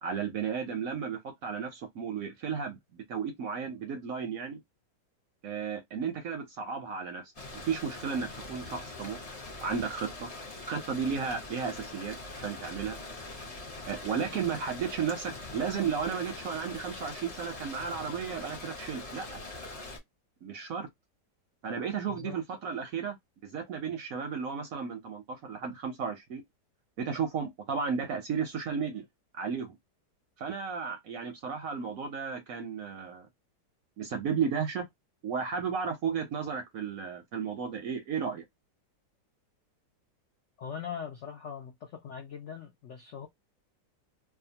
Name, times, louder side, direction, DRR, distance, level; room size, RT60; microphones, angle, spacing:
voice 1, 0.0-4.6 5.4-7.2 7.5-9.2 9.6-10.3 10.7-13.0 13.9-19.4 20.4-20.9 21.6-23.2 23.4-26.4 27.0-29.0 29.3-29.8 30.4-33.3 34.0-34.9 35.2-38.4, right 6 dB, 65° right, 0.8 m, -34 dB
sound 1, 7.3-20.0, left 2 dB, 35° left, 0.5 m, -43 dB
voice 2, 40.6-43.3, left 7 dB, 80° left, 0.6 m, -41 dB
2.8 x 2.3 x 2.7 m
omnidirectional pair, 2.0 m